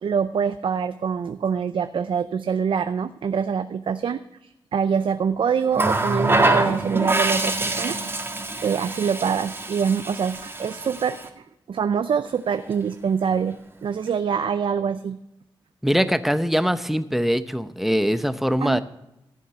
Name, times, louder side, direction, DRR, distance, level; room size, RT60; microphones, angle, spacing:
voice 1, 0.0-8.0 8.6-11.2 11.7-15.2 18.6-18.8, right 6 dB, 70° right, 11 dB, 0.5 m, -25 dB
Water tap faucet, 5.7-11.3 12.5-12.7, right 2 dB, 25° right, 1.8 m, -25 dB
voice 2, 15.8-18.8, equal, 5° right, 12 dB, 0.7 m, -22 dB
15.0 x 7.3 x 5.8 m, 0.90 s
cardioid pair, 70°, 9 cm